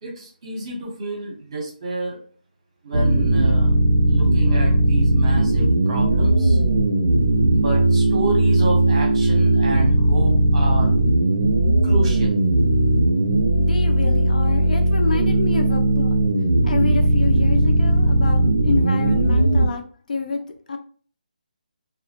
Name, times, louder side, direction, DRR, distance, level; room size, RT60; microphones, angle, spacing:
voice 1, 0.0-2.2 2.8-3.7 4.1-6.6 7.5-10.9 11.8-12.4, right 2 dB, 35° right, -2 dB, 1.0 m, -29 dB
sound 1, 2.9-19.7, right 1 dB, 65° right, 0.5 m, -18 dB
voice 2, 13.6-16.2 16.6-19.8 20.1-20.8, left 4 dB, 60° left, 5 dB, 0.4 m, -28 dB
2.3 x 2.1 x 2.8 m, 0.43 s
hypercardioid pair, 170°, 5 cm